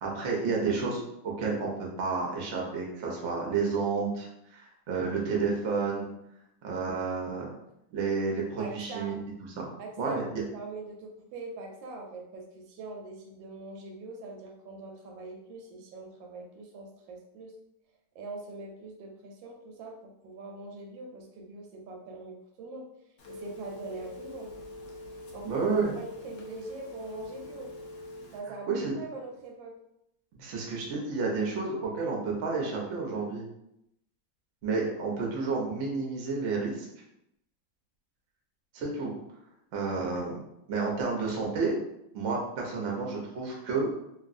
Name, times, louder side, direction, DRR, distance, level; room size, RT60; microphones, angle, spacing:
voice 1, 0.0-6.0 6.6-7.5 7.9-9.1 9.6-9.7 10.0-10.3 25.4-25.9 28.7-28.9 30.3-33.5 34.6-36.9 38.7-39.1 39.7-40.4 40.7-41.7 42.1-43.9, right 4 dB, 65° right, -2 dB, 0.7 m, -30 dB
voice 2, 8.6-9.2 9.8-17.5 18.1-22.9 23.3-24.5 25.1-25.6 25.9-27.7 28.3-29.7, right 2 dB, 85° right, 2 dB, 1.3 m, -43 dB
Telephone, 23.2-28.4, left 1 dB, 75° left, 0.7 m, -44 dB
2.9 x 2.6 x 2.5 m, 0.81 s
omnidirectional pair, 2.0 m